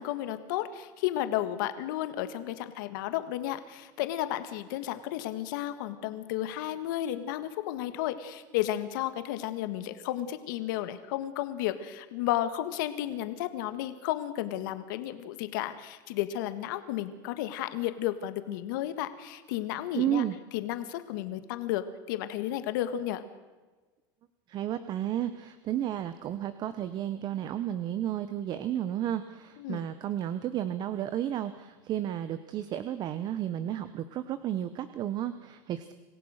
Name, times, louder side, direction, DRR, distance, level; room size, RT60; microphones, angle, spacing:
voice 1, 0.0-20.2 20.5-23.2 29.6-29.9, left 13 dB, 75° left, 11 dB, 1.8 m, -33 dB
voice 2, 19.9-20.3 24.5-35.9, right 11 dB, 40° right, 12 dB, 1.1 m, -32 dB
26.5 x 16.0 x 6.6 m, 1.3 s
supercardioid pair, 130°, 11 cm